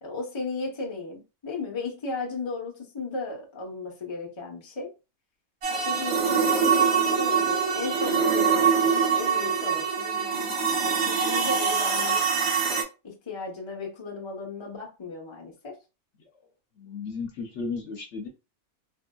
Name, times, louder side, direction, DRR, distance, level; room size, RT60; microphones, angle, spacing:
voice 1, 0.0-4.9 5.7-12.6 13.0-15.8, left 3 dB, 30° left, 0.6 m, -36 dB
sound 1, 5.6-12.8, right 6 dB, 55° right, 0.9 m, -24 dB
voice 2, 16.8-18.3, left 4 dB, 65° left, 0.9 m, -34 dB
3.5 x 2.6 x 2.2 m
omnidirectional pair, 1.5 m